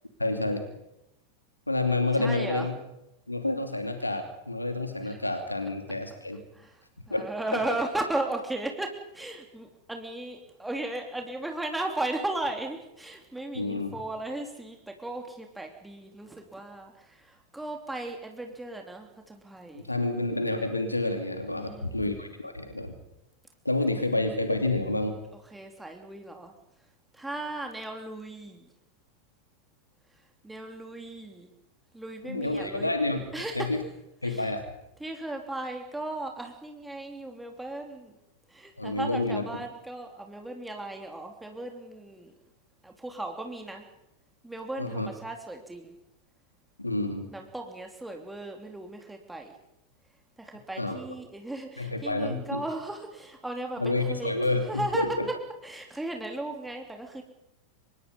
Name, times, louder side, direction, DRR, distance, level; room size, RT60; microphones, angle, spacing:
voice 1, 0.2-0.6 1.7-2.7 3.3-6.4 7.1-7.2 13.5-14.0 19.7-22.9 23.6-25.2 32.2-33.2 33.5-33.8 34.2-34.6 38.8-39.4 44.8-45.1 46.8-47.3 50.8-51.0 51.8-52.6 53.8-55.3, left 2 dB, 85° left, 6 dB, 2.8 m, -29 dB
voice 2, 2.2-2.7 6.5-19.9 21.5-22.1 23.8-24.2 25.5-26.5 27.1-28.7 30.4-31.5 31.9-32.9 33.3-33.7 34.2-34.5 35.0-38.1 38.5-42.3 42.8-43.9 44.4-46.0 47.3-49.5 50.4-54.3 54.7-55.0 55.6-57.2, right 2 dB, 5° right, 3 dB, 3.0 m, -36 dB
26.5 x 22.5 x 5.4 m, 0.88 s
figure-of-eight pair, 90°, 0 cm